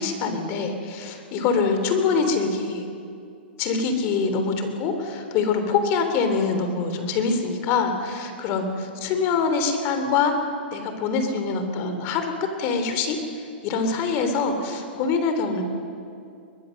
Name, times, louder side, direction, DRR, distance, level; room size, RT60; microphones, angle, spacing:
voice 1, 0.0-2.9 3.6-10.3 10.7-12.3 12.6-15.6, left 5 dB, 40° left, 7 dB, 3.3 m, -24 dB
22.5 x 21.0 x 6.6 m, 2.4 s
hypercardioid pair, 135°, 6 cm